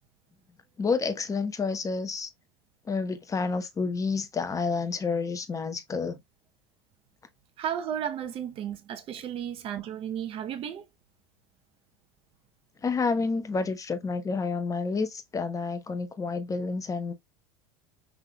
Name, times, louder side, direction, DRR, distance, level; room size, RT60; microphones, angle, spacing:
voice 1, 0.8-2.3 2.9-6.2 12.8-17.1, left 4 dB, 25° left, 1.0 m, -29 dB
voice 2, 7.6-10.9, right 9 dB, 45° right, 0.8 m, -34 dB
5.6 x 3.6 x 2.3 m
hypercardioid pair, 85°, 13 cm